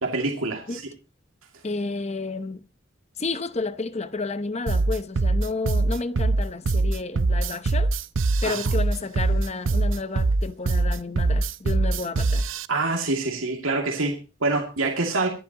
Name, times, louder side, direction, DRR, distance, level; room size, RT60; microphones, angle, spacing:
voice 1, 0.0-0.8 8.4-8.6 12.7-15.3, right 3 dB, 85° right, 2.3 m, -26 dB
voice 2, 1.6-2.6 3.2-7.9 8.4-12.5, left 3 dB, 35° left, 0.8 m, -31 dB
sound 1, 4.7-12.7, right 3 dB, 70° right, 0.6 m, -22 dB
24.0 x 11.0 x 2.9 m
head